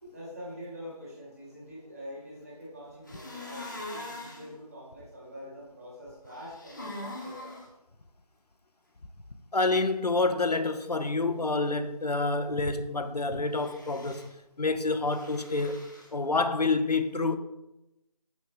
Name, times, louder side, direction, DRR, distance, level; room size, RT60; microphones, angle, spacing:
voice 1, 0.0-7.5, equal, 25° right, 2.0 m, -45 dB
sound 1, 3.1-4.5 6.3-7.7 13.5-14.3 15.1-16.1, left 1 dB, 30° left, 1.0 m, -42 dB
voice 2, 9.5-14.3 14.6-15.8 16.1-17.4, left 3 dB, 85° left, 0.7 m, -28 dB
6.2 x 6.2 x 3.3 m
figure-of-eight pair, 165°, 20 cm